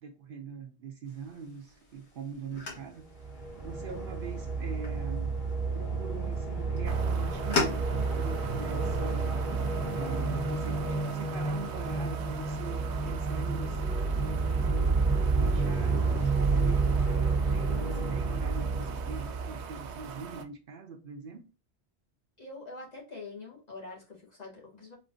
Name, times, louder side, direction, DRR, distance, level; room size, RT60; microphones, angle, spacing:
voice 1, 0.0-3.1 3.3-5.3 5.7-7.8 8.2-9.5 9.9-14.9 15.3-21.5, right 5 dB, 60° right, 0.7 m, -43 dB
sound 1, 1.1-8.3, left 3 dB, 75° left, 1.6 m, -39 dB
sound 2, 3.0-20.1, right 4 dB, ahead, 2.3 m, -30 dB
sound 3, 6.8-20.4, right 5 dB, 85° right, 0.9 m, -42 dB
voice 2, 22.4-25.0, left 3 dB, 40° left, 1.3 m, -45 dB
4.4 x 3.1 x 2.6 m
omnidirectional pair, 1.1 m